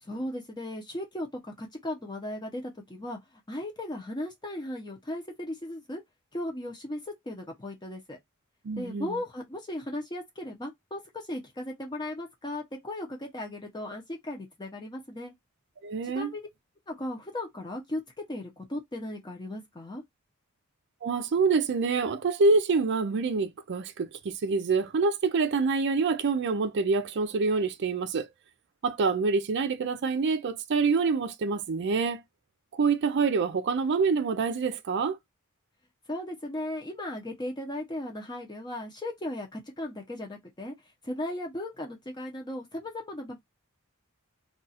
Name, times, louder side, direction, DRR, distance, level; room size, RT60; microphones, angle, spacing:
voice 1, 0.0-3.2 3.5-6.0 6.3-8.2 8.8-15.3 16.1-16.5 16.9-18.0 18.3-20.0 36.1-40.7 41.0-43.4, left 1 dB, 20° left, 0.7 m, -36 dB
voice 2, 8.6-9.2 15.8-16.3 21.0-28.3 28.8-32.2 32.7-35.2, right 4 dB, 55° right, 0.4 m, -26 dB
2.4 x 2.3 x 4.0 m
head